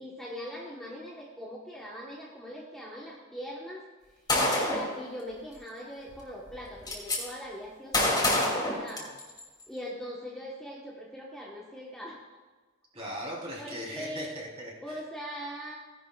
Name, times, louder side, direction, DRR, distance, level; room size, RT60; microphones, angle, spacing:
voice 1, 0.0-3.8 4.3-9.1 9.7-12.2 13.6-14.3 14.8-15.8, equal, 5° left, -5 dB, 1.3 m, -41 dB
Gunshot gunfire, 4.3-4.9 6.1-6.2 6.5-7.2 7.9-9.4, left 1 dB, 20° left, 2.9 m, -26 dB
voice 2, 12.9-15.0, equal, 30° right, -4 dB, 3.9 m, -39 dB
17.0 x 11.5 x 2.5 m, 1.3 s
head